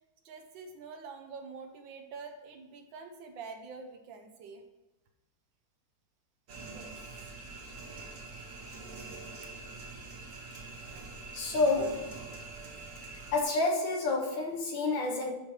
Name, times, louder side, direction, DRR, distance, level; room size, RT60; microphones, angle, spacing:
voice 1, 0.2-4.6 6.7-7.0, right 4 dB, 70° right, 1.4 m, -46 dB
sound 1, 6.5-13.4, right 3 dB, 45° right, 1.2 m, -45 dB
voice 2, 11.3-12.2 13.1-15.3, left 3 dB, 65° left, 1.8 m, -29 dB
10.0 x 5.0 x 3.2 m
omnidirectional pair, 2.3 m